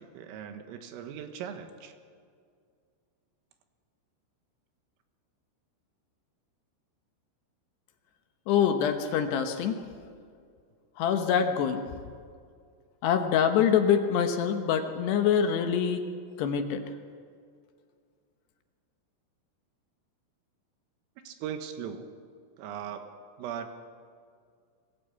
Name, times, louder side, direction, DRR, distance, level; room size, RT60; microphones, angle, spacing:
voice 1, 0.0-1.9 21.3-22.1 22.6-23.7, right 8 dB, 85° right, 7 dB, 4.0 m, -39 dB
voice 2, 8.5-9.8 11.0-11.8 13.0-16.1 16.4-16.8, left 8 dB, 70° left, 6 dB, 2.7 m, -25 dB
23.5 x 15.5 x 8.5 m, 2.2 s
omnidirectional pair, 6.0 m